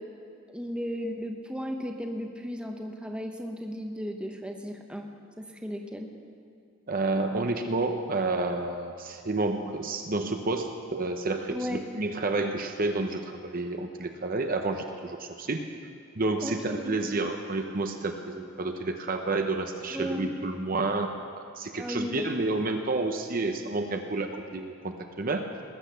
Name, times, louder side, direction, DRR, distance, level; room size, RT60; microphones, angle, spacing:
voice 1, 0.5-5.1 5.4-6.1 11.5-11.9 16.4-17.0 19.9-20.4 21.7-22.4, equal, 5° right, 3 dB, 1.0 m, -35 dB
voice 2, 6.9-15.6 16.2-21.1 21.6-25.5, right 2 dB, 45° right, 5 dB, 0.8 m, -30 dB
19.5 x 8.2 x 6.8 m, 2.5 s
head